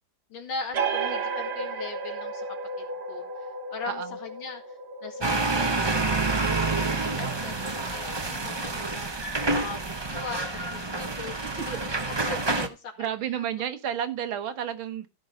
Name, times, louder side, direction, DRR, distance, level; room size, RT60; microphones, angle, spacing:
voice 1, 0.3-2.5 2.8-6.2 6.7-9.1 9.5-13.1 13.4-13.5, left 4 dB, 75° left, 2.9 m, -40 dB
sound 1, 0.7-8.0, right 4 dB, 50° right, 0.8 m, -34 dB
voice 2, 3.9-4.2 11.4-11.5 13.0-15.1, right 9 dB, 80° right, 1.9 m, -31 dB
sound 2, 5.2-12.7, right 3 dB, 30° right, 0.4 m, -28 dB
15.0 x 5.4 x 5.4 m
omnidirectional pair, 2.2 m